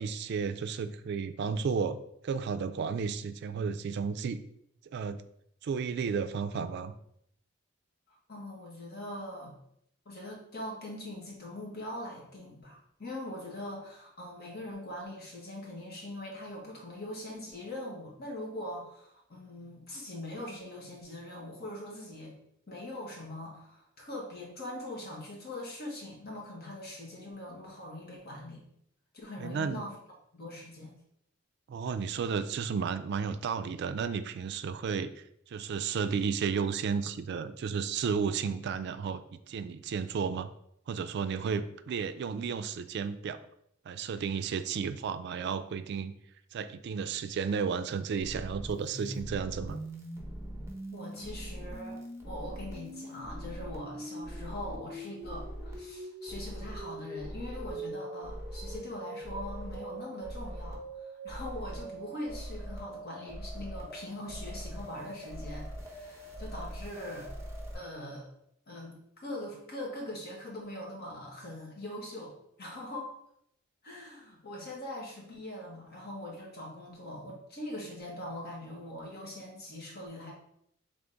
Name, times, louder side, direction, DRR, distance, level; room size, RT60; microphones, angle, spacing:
voice 1, 0.0-2.0 2.2-4.4 4.9-5.2 5.6-6.9 29.4-29.8 31.7-40.5 40.9-43.4 43.9-46.1 46.5-49.8, right 6 dB, 55° right, 11 dB, 0.3 m, -33 dB
voice 2, 8.1-9.6 10.0-22.4 22.7-28.6 29.1-29.9 30.3-30.9 50.9-52.0 52.2-67.3 67.7-68.3 68.7-73.1 73.8-80.3, left 1 dB, 55° left, -2 dB, 1.3 m, -42 dB
sound 1, 48.2-67.7, right 1 dB, 15° right, 0.8 m, -42 dB
3.5 x 3.5 x 3.8 m, 0.71 s
head